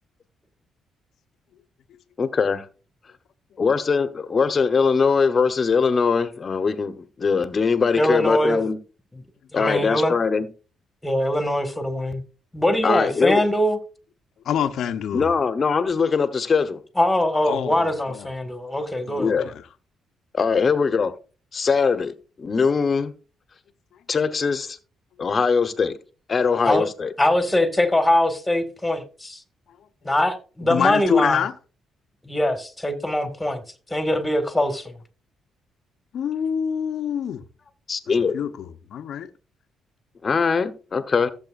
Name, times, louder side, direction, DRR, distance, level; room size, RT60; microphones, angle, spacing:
voice 1, 2.2-2.6 3.6-8.8 9.5-10.5 12.8-13.4 15.1-16.8 19.2-19.5 20.3-21.1 21.5-23.1 24.1-24.8 25.2-26.0 26.3-27.1 37.9-38.4 40.2-41.3, left 5 dB, 40° left, 1.1 m, -21 dB
voice 2, 8.0-8.6 9.5-10.1 11.0-12.2 12.5-13.8 17.0-19.5 26.6-26.9 27.2-29.4 30.0-31.4 32.2-33.6 33.9-35.0, left 1 dB, 10° left, 2.0 m, -22 dB
voice 3, 14.4-15.3 17.4-18.3 19.1-19.6 30.6-31.5 36.1-37.4 38.3-39.3, left 8 dB, 70° left, 0.8 m, -26 dB
15.0 x 7.3 x 2.5 m
cardioid pair, 90°, 0 cm